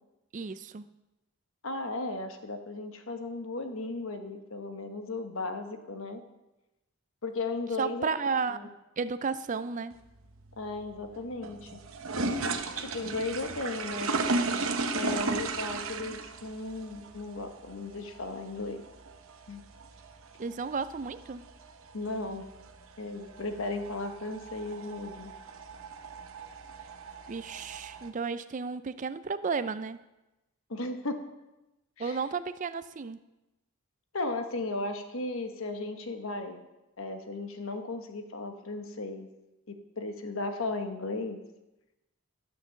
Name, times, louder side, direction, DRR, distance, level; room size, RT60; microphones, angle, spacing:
voice 1, 0.3-0.8 7.8-8.6 9.0-10.0 20.4-21.4 27.3-30.0 32.0-33.2, right 5 dB, 35° right, 13 dB, 0.4 m, -33 dB
voice 2, 1.6-6.2 7.2-8.1 8.5-8.7 10.6-11.7 12.8-14.4 14.9-18.8 19.5-19.6 21.9-22.5 23.0-25.3 30.7-31.2 32.0-32.2 34.1-36.7 37.0-39.3 39.7-41.4, left 2 dB, 65° left, 7 dB, 1.1 m, -35 dB
sound 1, 9.9-28.1, right 3 dB, 65° right, 0.9 m, -36 dB
12.0 x 6.0 x 6.9 m, 1.0 s
head